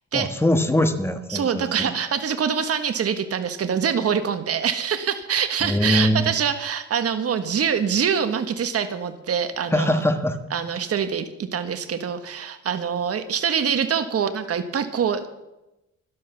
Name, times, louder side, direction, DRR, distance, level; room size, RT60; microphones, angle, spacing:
voice 1, 0.1-1.9 5.6-6.2 9.7-10.4, left 1 dB, 10° left, 8 dB, 1.4 m, -22 dB
voice 2, 1.3-10.0 10.5-15.3, right 7 dB, 50° right, 9 dB, 1.5 m, -24 dB
12.0 x 11.5 x 7.0 m, 0.95 s
cardioid pair, 90°, 30 cm